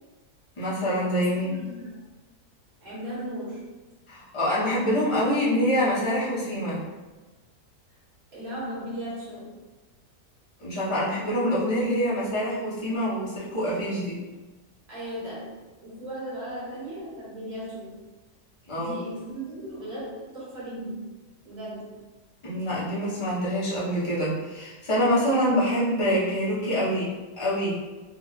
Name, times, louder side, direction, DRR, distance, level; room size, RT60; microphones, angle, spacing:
voice 1, 0.6-1.6 4.1-6.8 10.6-14.2 18.7-19.0 22.4-27.1 27.4-27.8, equal, 25° left, -9 dB, 0.8 m, -25 dB
voice 2, 1.4-2.0 2.8-3.6 8.3-9.6 14.9-18.0 18.7-21.1 21.4-22.0, right 1 dB, 60° right, -10 dB, 1.9 m, -36 dB
4.3 x 2.3 x 2.4 m, 1.2 s
omnidirectional pair, 1.7 m